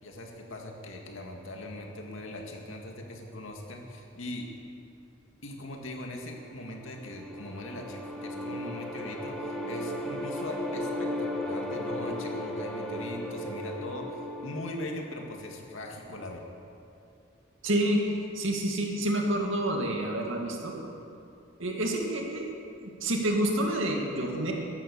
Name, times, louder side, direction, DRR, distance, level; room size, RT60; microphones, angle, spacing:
voice 1, 0.0-4.5 5.4-16.4, left 1 dB, 80° left, 1 dB, 2.1 m, -40 dB
sound 1, 6.8-15.9, left 1 dB, 5° left, 1.4 m, -36 dB
voice 2, 17.6-18.0 18.3-20.8 21.6-22.5 22.8-24.5, right 1 dB, 75° right, 1 dB, 2.3 m, -28 dB
14.0 x 11.5 x 7.0 m, 2.6 s
head